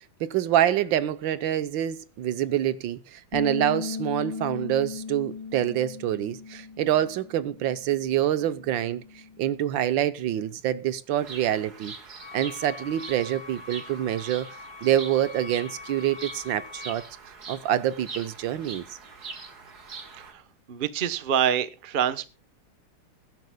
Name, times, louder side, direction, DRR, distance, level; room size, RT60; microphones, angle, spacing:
voice 1, 0.2-9.0 9.4-11.9 12.3-14.5 14.8-17.0 17.5-18.9, right 11 dB, 85° right, 1.5 m, -26 dB
Bass guitar, 3.3-9.6, left 5 dB, 10° left, 2.0 m, -38 dB
Bird vocalization bird call bird song, 11.2-20.3, right 4 dB, 55° right, 2.3 m, -43 dB
Wind instrument woodwind instrument, 12.2-17.1, left 4 dB, 80° left, 3.7 m, -44 dB
voice 2, 20.7-22.3, right 9 dB, 40° right, 0.7 m, -26 dB
22.0 x 10.5 x 2.2 m
omnidirectional pair, 2.0 m